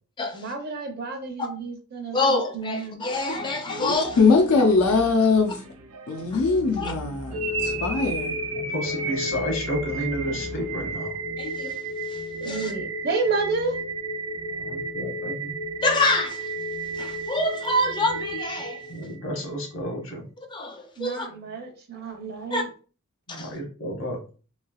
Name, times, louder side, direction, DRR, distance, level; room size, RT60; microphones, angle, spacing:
voice 1, 0.3-3.1 12.4-13.8 21.0-22.7, right 3 dB, 45° right, 0.6 m, -30 dB
voice 2, 2.1-4.2 6.3-6.4 6.8-6.9 11.4-11.8 12.1-12.7 15.8-16.5 16.9-18.8 20.5-21.3 22.5-22.6 23.4-23.5, left 2 dB, 20° left, 0.4 m, -26 dB
sound 1, 3.1-11.0, right 1 dB, 90° right, 0.5 m, -41 dB
voice 3, 3.8-5.6 6.1-8.4, left 4 dB, 90° left, 0.5 m, -21 dB
sound 2, 7.3-19.4, right 1 dB, 70° right, 1.0 m, -32 dB
voice 4, 8.5-11.2 14.6-15.5 18.9-20.2 23.3-24.2, equal, 65° left, 1.0 m, -31 dB
3.2 x 2.7 x 2.3 m
head